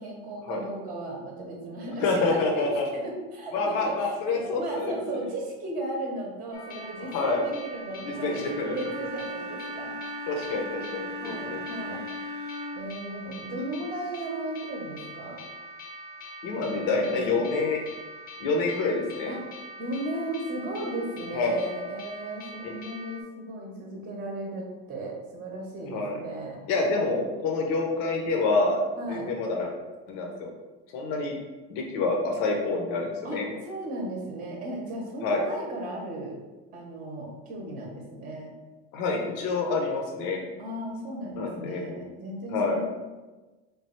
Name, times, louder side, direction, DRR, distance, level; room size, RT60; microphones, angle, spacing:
voice 1, 0.0-2.7 2.9-9.9 11.2-12.0 12.8-15.4 16.7-17.6 19.3-19.4 19.8-26.6 29.0-29.3 33.2-36.4 36.7-38.5 40.6-42.9, right 1 dB, 25° right, -1 dB, 0.8 m, -36 dB
voice 2, 2.0-2.9 3.5-5.3 7.0-7.4 8.0-8.8 10.3-11.6 16.4-17.8 18.4-19.3 21.3-21.6 22.6-22.7 25.9-26.2 26.7-28.8 29.1-29.7 30.1-30.5 30.9-31.4 31.7-33.5 35.2-35.4 38.9-40.4 41.3-41.8 42.5-42.8, left 3 dB, 65° left, 1 dB, 0.8 m, -27 dB
sound 1, 6.5-23.2, equal, 25° left, 0.7 m, -43 dB
Wind instrument woodwind instrument, 8.1-12.9, left 1 dB, 55° right, 0.6 m, -37 dB
3.3 x 2.3 x 4.3 m, 1.2 s
supercardioid pair, 110°, 35 cm